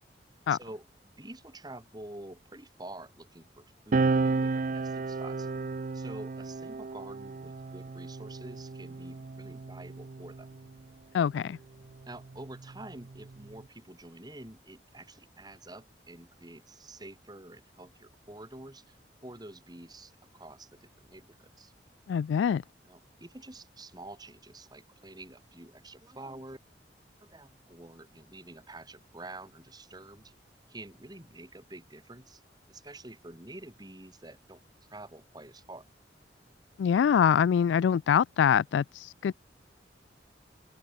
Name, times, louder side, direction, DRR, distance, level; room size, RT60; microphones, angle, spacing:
voice 1, 0.5-0.9 1.2-5.5 5.9-10.5 12.1-19.0 19.2-21.7 22.8-26.6 27.2-30.3 30.7-32.4 32.7-34.6 34.9-35.9, right 2 dB, 25° right, 3.1 m, -48 dB
sound 1, 3.9-10.8 11.8-13.6, right 3 dB, 45° right, 0.5 m, -33 dB
voice 2, 11.1-11.6 22.1-22.6 36.8-39.3, left 8 dB, 90° left, 0.3 m, -24 dB
open air
head